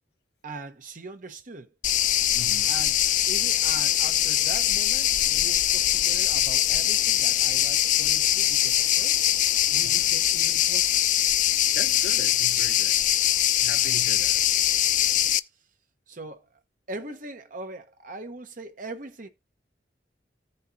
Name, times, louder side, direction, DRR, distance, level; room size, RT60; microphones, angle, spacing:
voice 1, 0.4-1.7 2.7-3.0 3.3-9.2 9.7-11.0 16.1-16.6 16.9-19.3, right 2 dB, 50° right, 1.1 m, -41 dB
sound 1, 1.8-15.4, left 12 dB, 45° left, 0.4 m, -22 dB
voice 2, 2.3-2.7 9.8-10.1 11.7-13.0 13.6-14.4, left 4 dB, 65° left, 0.8 m, -40 dB
15.0 x 5.5 x 2.8 m
head